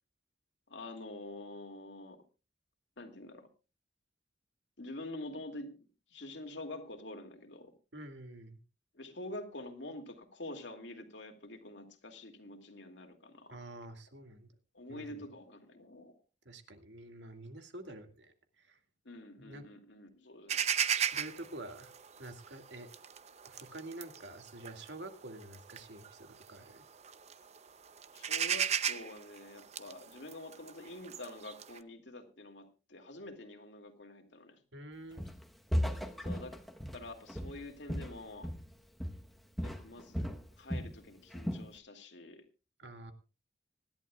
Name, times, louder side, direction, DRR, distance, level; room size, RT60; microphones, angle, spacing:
voice 1, 0.7-2.2 3.0-3.5 4.8-5.8 6.1-7.7 8.9-13.6 14.7-16.1 19.1-20.7 28.1-34.6 36.2-36.6 36.9-38.5 39.6-40.3 40.6-42.4, left 2 dB, 80° left, 5 dB, 2.4 m, -47 dB
voice 2, 7.9-8.6 13.5-14.5 14.9-15.3 16.5-18.8 19.4-19.6 21.1-21.9 22.2-22.9 23.4-26.8 34.7-35.2 42.8-43.1, right 1 dB, 75° right, 6 dB, 2.1 m, -48 dB
sound 1, 20.5-26.7 27.0-27.6 27.9-31.8, right 8 dB, 35° right, 0.7 m, -35 dB
Walk footsteps, 35.2-35.5 35.7-38.7 39.0-39.3 39.6-41.0 41.3-41.7, equal, ahead, 1.1 m, -36 dB
25.5 x 11.0 x 2.4 m, 0.32 s
head